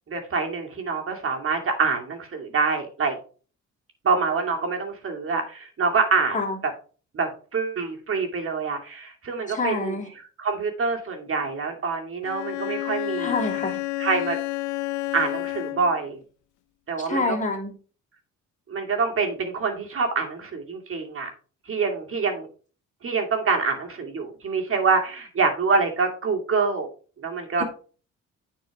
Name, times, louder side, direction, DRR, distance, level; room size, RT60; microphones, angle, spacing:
voice 1, 0.1-3.2 4.0-6.4 7.1-10.0 10.4-13.3 14.0-14.4 15.1-16.2 16.9-17.4 18.7-21.3 21.7-22.5 23.0-26.9 27.2-27.6, right 4 dB, 45° right, 2.5 m, -26 dB
voice 2, 9.5-10.1 13.2-13.8 17.0-17.7 27.6-27.7, left 3 dB, 25° left, 3.0 m, -27 dB
Bowed string instrument, 12.2-16.0, left 19 dB, 85° left, 0.6 m, -30 dB
9.2 x 4.6 x 4.8 m
cardioid pair, 90°, 30 cm